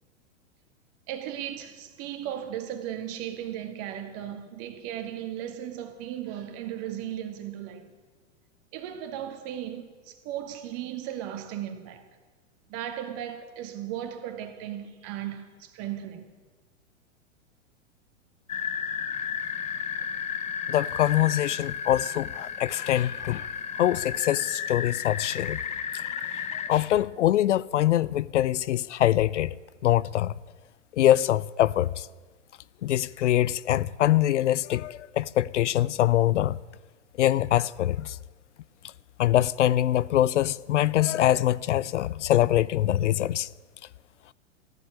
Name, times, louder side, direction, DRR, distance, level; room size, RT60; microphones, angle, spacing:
voice 1, 1.1-7.9 8.7-12.0 12.7-16.3, right 11 dB, 40° right, 2.0 m, -36 dB
sound 1, 18.5-26.7, left 7 dB, 20° left, 0.9 m, -33 dB
voice 2, 20.7-23.5 23.8-25.6 26.7-29.5 29.8-30.3 30.9-32.1 32.8-36.6 37.2-38.2 39.2-43.5, left 13 dB, 70° left, 0.5 m, -24 dB
15.0 x 10.0 x 9.7 m
hypercardioid pair, 105°, 38 cm